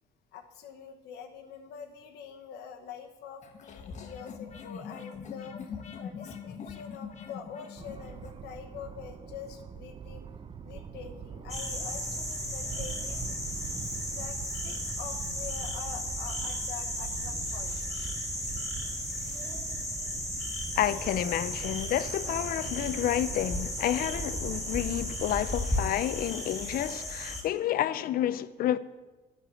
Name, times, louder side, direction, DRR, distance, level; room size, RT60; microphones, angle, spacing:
voice 1, 0.3-5.7 6.0-10.2 10.6-13.2 14.1-17.8 18.2-18.3, left 7 dB, 80° left, 1.1 m, -45 dB
sound 1, 3.4-8.4, left 6 dB, 45° left, 1.2 m, -43 dB
sound 2, 7.8-25.5, right 7 dB, 30° right, 0.5 m, -43 dB
sound 3, 11.5-27.4, left 1 dB, 5° left, 3.0 m, -35 dB
voice 2, 20.8-28.8, left 12 dB, 60° left, 0.5 m, -30 dB
9.1 x 6.7 x 7.5 m
cardioid pair, 110°, 17 cm